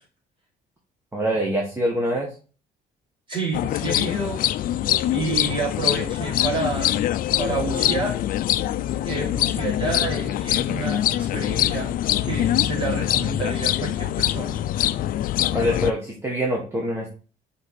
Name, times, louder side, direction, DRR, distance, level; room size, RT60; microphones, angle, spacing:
voice 1, 1.1-2.3 15.5-17.1, equal, 15° right, -1 dB, 1.5 m, -24 dB
voice 2, 3.3-4.4 5.1-7.0 7.4-8.2 9.0-14.6, right 4 dB, 30° right, -4 dB, 3.9 m, -29 dB
sound 1, 3.5-15.9, left 12 dB, 55° left, 0.4 m, -24 dB
5.8 x 5.0 x 4.2 m, 0.36 s
cardioid pair, 110°, 17 cm